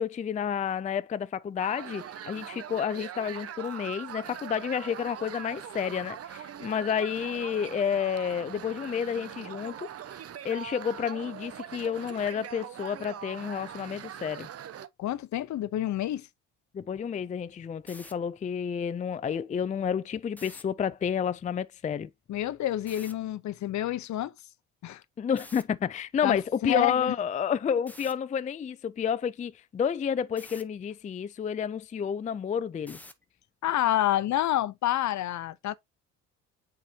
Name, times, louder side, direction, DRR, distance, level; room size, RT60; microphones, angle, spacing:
voice 1, 0.0-9.9 10.4-14.5 16.7-22.1 25.2-33.0, left 7 dB, 25° left, 0.4 m, -30 dB
sound 1, 1.6-14.9, right 9 dB, 45° right, 0.8 m, -42 dB
voice 2, 15.0-16.3 22.3-24.3 24.8-25.0 26.2-26.4 26.6-27.1 33.6-35.7, left 13 dB, 60° left, 0.7 m, -28 dB
sound 2, 17.9-18.1 20.3-20.6 22.9-23.1 25.4-25.6 27.9-28.1 30.4-30.6 32.9-33.2, left 1 dB, 5° left, 1.0 m, -47 dB
7.4 x 4.8 x 2.7 m
cardioid pair, 90°, 33 cm